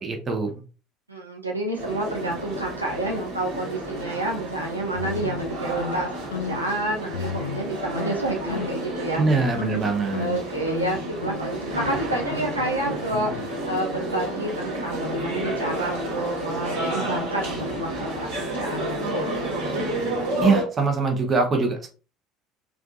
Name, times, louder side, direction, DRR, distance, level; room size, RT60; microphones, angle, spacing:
voice 1, 0.0-0.5 9.1-10.3 20.4-21.9, right 4 dB, 30° right, 4 dB, 0.8 m, -23 dB
voice 2, 1.1-9.2 10.2-19.7, right 2 dB, 85° right, -1 dB, 0.5 m, -29 dB
sound 1, 1.8-20.6, right 1 dB, 65° right, 1.3 m, -31 dB
sound 2, 5.0-6.0 6.3-6.7 7.1-7.7 8.0-8.2 8.5-8.9 9.3-13.7, left 6 dB, 75° left, 0.3 m, -33 dB
3.5 x 2.4 x 2.3 m, 0.35 s
figure-of-eight pair, 65°, 0 cm